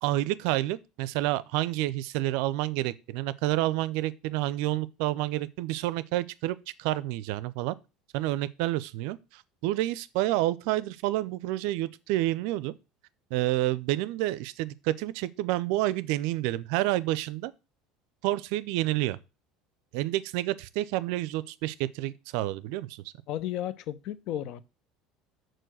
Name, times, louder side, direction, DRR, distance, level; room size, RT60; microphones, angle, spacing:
voice 1, 0.0-7.8 8.1-12.7 13.3-17.5 18.2-19.2 19.9-23.0, right 16 dB, 65° right, 0.4 m, -29 dB
voice 2, 23.3-24.6, left 12 dB, 60° left, 0.6 m, -33 dB
6.3 x 4.5 x 6.2 m
hypercardioid pair, 70°, 0 cm